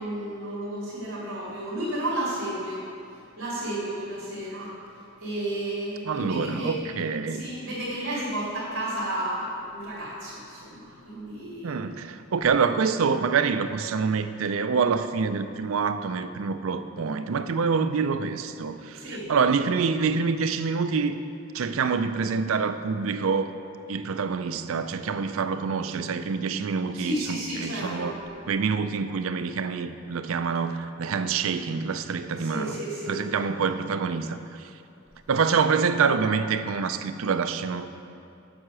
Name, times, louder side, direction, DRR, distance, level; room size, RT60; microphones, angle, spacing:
voice 1, 0.0-2.8 3.4-4.7 5.2-6.9 7.3-11.8 18.9-19.3 26.9-28.1 32.4-33.2, right 1 dB, 60° right, -9 dB, 2.2 m, -32 dB
voice 2, 6.0-7.4 11.6-19.0 19.3-21.2 21.5-23.5 23.9-28.2 28.5-32.8 33.1-34.4 35.3-37.9, right 5 dB, 80° right, 10 dB, 0.4 m, -26 dB
7.8 x 6.6 x 6.1 m, 2.6 s
head